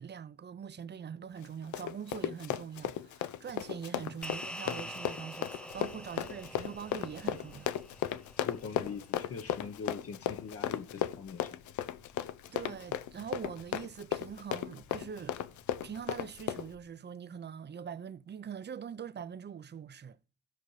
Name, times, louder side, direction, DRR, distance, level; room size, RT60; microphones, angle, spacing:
voice 1, 0.0-7.7 12.5-15.4 15.8-20.2, right 7 dB, 35° right, 0.6 m, -43 dB
Run, 1.4-16.7, left 11 dB, 70° left, 0.6 m, -35 dB
sound 1, 4.2-8.9, equal, 5° left, 0.4 m, -46 dB
sound 2, 5.7-16.8, left 3 dB, 90° left, 2.1 m, -60 dB
voice 2, 8.4-11.6, left 5 dB, 50° left, 1.0 m, -42 dB
15.5 x 5.3 x 3.2 m
cardioid pair, 90°, 30 cm